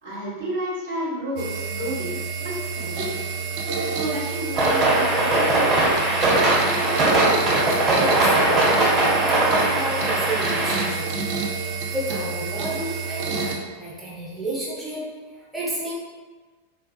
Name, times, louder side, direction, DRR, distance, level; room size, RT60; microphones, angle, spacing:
voice 1, 0.0-3.2 3.9-7.1, right 1 dB, 70° right, -8 dB, 1.3 m, -32 dB
sound 1, 1.4-13.6, right 5 dB, 45° right, 0.4 m, -29 dB
sound 2, 4.5-10.9, right 2 dB, 30° right, 1.2 m, -20 dB
voice 2, 7.7-11.1 11.9-15.9, right 1 dB, 5° right, -8 dB, 0.7 m, -31 dB
3.7 x 2.3 x 2.3 m, 1.3 s
figure-of-eight pair, 90°, 0 cm